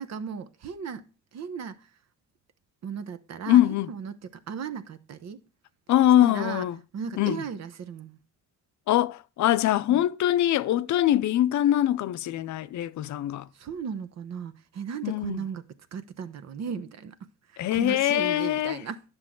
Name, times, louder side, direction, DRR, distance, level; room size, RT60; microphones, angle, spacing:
voice 1, 0.0-1.9 2.8-5.4 6.2-6.7 6.9-8.2 9.9-10.1 13.5-19.0, right 6 dB, 60° right, 0.9 m, -36 dB
voice 2, 3.5-3.9 5.9-6.8 7.2-7.4 8.9-13.5 15.0-15.4 17.6-18.8, left 12 dB, 70° left, 0.6 m, -23 dB
10.5 x 6.3 x 3.7 m
cardioid pair, 90°, 30 cm